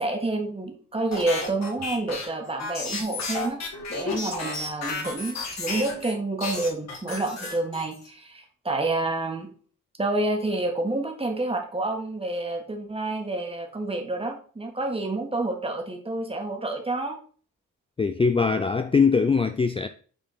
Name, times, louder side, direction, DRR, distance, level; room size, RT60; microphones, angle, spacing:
voice 1, 0.0-3.6 3.9-9.5 10.0-17.2, right 2 dB, 20° right, 1.5 m, -29 dB
sound 1, 1.1-6.1 6.4-8.1, left 3 dB, 60° left, 2.3 m, -32 dB
voice 2, 18.0-19.9, left 5 dB, 20° left, 0.4 m, -22 dB
6.5 x 4.1 x 4.1 m
cardioid pair, 85°, 30 cm